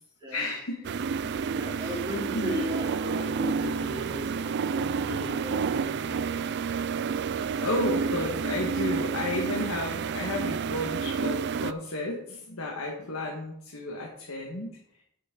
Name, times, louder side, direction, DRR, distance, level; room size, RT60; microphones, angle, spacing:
voice 1, 0.3-0.8 1.8-1.9 2.3-2.6 7.3-14.7, left 2 dB, 85° left, -1 dB, 1.7 m, -32 dB
sound 1, 0.8-11.7, right 6 dB, 50° right, 0.4 m, -30 dB
voice 2, 1.5-6.3, left 1 dB, 20° right, -5 dB, 3.3 m, -36 dB
10.0 x 8.6 x 3.8 m, 0.73 s
head